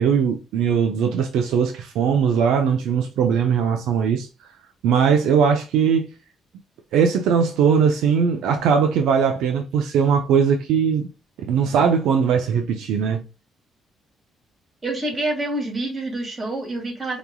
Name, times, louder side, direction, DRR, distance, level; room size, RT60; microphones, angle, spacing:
voice 1, 0.0-4.3 4.8-6.1 6.9-11.1 11.4-13.2, right 7 dB, 90° right, 0.7 m, -20 dB
voice 2, 14.8-17.2, right 2 dB, 35° right, 2.4 m, -27 dB
5.1 x 3.1 x 2.3 m
cardioid pair, 90°, 0 cm